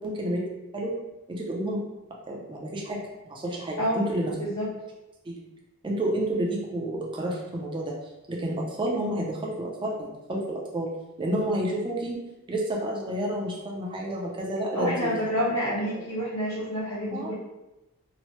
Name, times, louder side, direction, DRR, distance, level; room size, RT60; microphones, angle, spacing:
voice 1, 0.0-0.4 0.7-0.9 1.3-1.8 2.3-4.3 5.3-5.4 5.8-8.0 8.3-10.9 11.2-12.2 12.5-15.2 17.1-17.3, right 1 dB, 20° right, -2 dB, 0.4 m, -30 dB
voice 2, 14.7-17.3, equal, 65° left, -11 dB, 0.9 m, -28 dB
3.0 x 2.1 x 3.0 m, 0.99 s
head